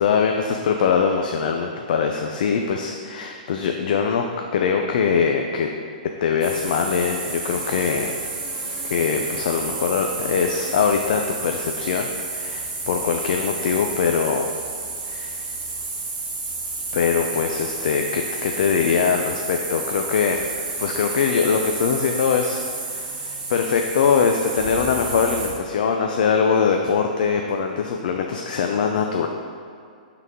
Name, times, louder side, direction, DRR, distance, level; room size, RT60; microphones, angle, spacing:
voice 1, 0.0-4.2 4.5-5.7 6.2-8.1 8.9-14.5 15.0-15.4 16.9-29.3, left 6 dB, 65° left, 3 dB, 0.4 m, -22 dB
sound 1, 6.4-25.5, right 3 dB, 25° right, 1.6 m, -31 dB
8.1 x 3.9 x 3.6 m, 2.3 s
hypercardioid pair, 150°, 5 cm